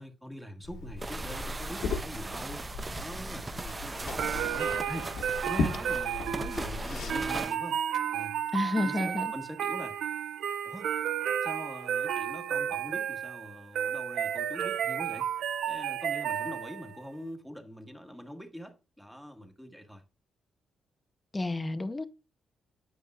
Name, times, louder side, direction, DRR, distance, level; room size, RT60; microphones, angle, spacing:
voice 1, 0.0-2.6 2.9-5.1 5.5-7.8 8.1-8.4 8.8-10.0 10.6-10.9 11.4-15.3 15.7-20.0, equal, ahead, 1.5 m, -43 dB
Liquid, 0.6-7.4, left 3 dB, 80° left, 1.3 m, -37 dB
sound 1, 1.0-7.6, right 3 dB, 20° right, 0.3 m, -39 dB
sound 2, 4.2-17.0, right 9 dB, 80° right, 0.6 m, -32 dB
voice 2, 8.5-9.3 21.3-22.0, left 2 dB, 15° left, 0.7 m, -30 dB
8.6 x 8.3 x 2.4 m
cardioid pair, 125°, 0 cm